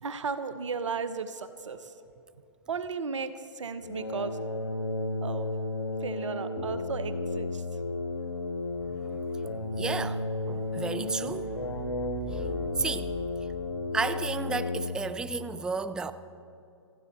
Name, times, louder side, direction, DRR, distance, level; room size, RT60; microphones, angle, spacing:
voice 1, 0.0-2.0 2.7-4.4 5.2-5.5 6.0-7.8, right 5 dB, 80° right, 0.8 m, -35 dB
sound 1, 3.8-15.1, left 2 dB, 85° left, 1.5 m, -33 dB
voice 2, 9.8-12.0 12.3-12.5 12.8-13.1 13.4-13.5 13.9-16.1, right 4 dB, 5° right, 0.3 m, -33 dB
28.0 x 9.6 x 4.2 m
hypercardioid pair, 125°, 15 cm